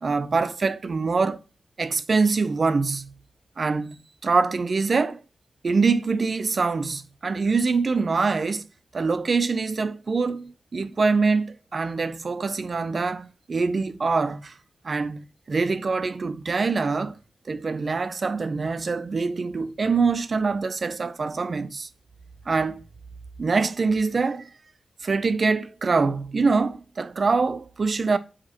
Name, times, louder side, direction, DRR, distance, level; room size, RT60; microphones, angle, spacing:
voice 1, 0.0-1.4 1.8-3.1 3.6-5.2 5.6-8.7 8.9-14.5 14.8-17.2 17.5-21.9 22.5-22.8 23.4-24.5 25.0-28.2, right 4 dB, 45° right, 0.5 m, -24 dB
8.3 x 5.0 x 2.9 m
wide cardioid pair, 115°, 0 cm